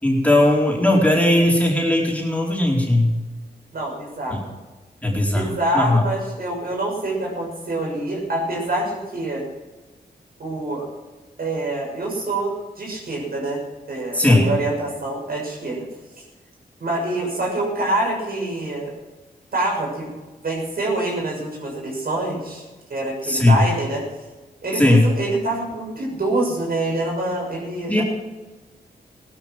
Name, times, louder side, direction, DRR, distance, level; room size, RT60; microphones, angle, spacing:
voice 1, 0.0-3.1 4.3-4.4 5.0-5.5 5.7-6.0 14.1-14.5 23.2-23.6 24.8-25.0 27.9-28.0, left 1 dB, 10° left, -2 dB, 4.6 m, -17 dB
voice 2, 3.7-4.5 5.3-9.4 10.4-10.9 11.4-13.6 13.9-15.9 16.8-18.9 19.5-20.1 20.4-24.0 24.6-28.0, right 2 dB, 60° right, -1 dB, 6.6 m, -26 dB
17.0 x 12.0 x 6.2 m, 1.2 s
cardioid pair, 75°, 17 cm